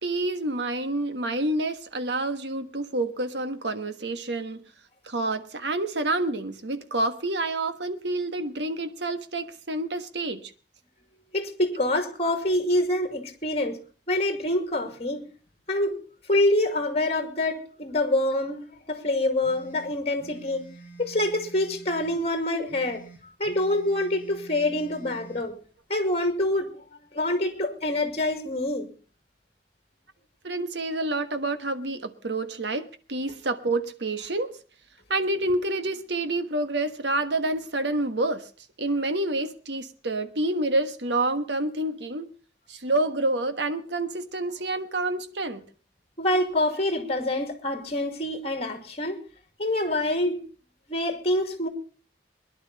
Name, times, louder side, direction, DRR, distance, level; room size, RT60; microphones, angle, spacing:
voice 1, 0.0-4.7 5.0-10.5 12.2-12.3 30.4-34.5 35.1-38.5 38.8-42.3 42.7-45.6, right 2 dB, 70° right, 1.4 m, -28 dB
voice 2, 11.3-13.8 14.1-15.2 15.7-16.0 16.3-20.6 21.0-23.0 23.4-25.5 25.9-26.7 27.1-28.9 46.2-49.2 49.6-50.4 50.9-51.7, left 1 dB, 35° left, 2.4 m, -26 dB
sound 1, 19.4-22.2 22.7-25.5, right 3 dB, 10° right, 6.5 m, -47 dB
22.0 x 11.0 x 4.1 m
head